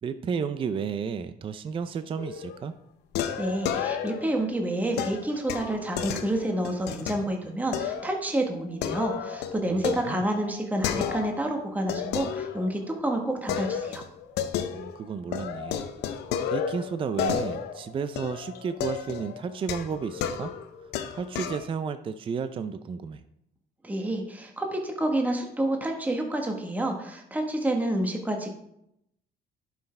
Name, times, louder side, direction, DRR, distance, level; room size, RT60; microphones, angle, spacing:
voice 1, 0.0-2.7 9.7-10.2 14.7-15.8 16.5-20.5 21.1-23.2, right 6 dB, 30° right, 11 dB, 0.5 m, -32 dB
sound 1, 2.2-2.6 3.1-4.4 5.0-7.2 7.7-8.2 8.5-11.5 11.9-13.0 13.5-15.0 15.3-21.7, left 8 dB, 80° left, 0.7 m, -32 dB
voice 2, 3.4-14.0 23.8-28.5, right 1 dB, 10° right, 2 dB, 1.2 m, -29 dB
11.0 x 5.9 x 3.3 m, 0.79 s
cardioid pair, 110°, 17 cm